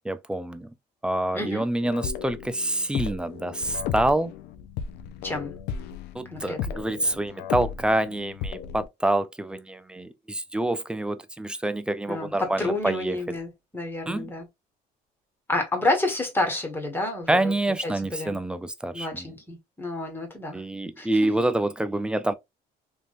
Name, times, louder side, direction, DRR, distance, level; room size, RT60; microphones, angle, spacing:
voice 1, 0.0-0.7 1.0-4.3 6.1-13.2 14.1-14.3 17.3-19.3 20.5-22.3, right 1 dB, 5° right, 0.3 m, -27 dB
voice 2, 1.3-1.6 5.2-5.5 6.3-6.8 12.1-14.5 15.5-17.5 17.8-18.4 18.9-20.6 21.0-21.3, left 2 dB, 10° left, 1.4 m, -29 dB
sound 1, 1.8-8.9, left 7 dB, 85° left, 0.5 m, -35 dB
3.4 x 2.6 x 2.5 m
cardioid pair, 110°, 17 cm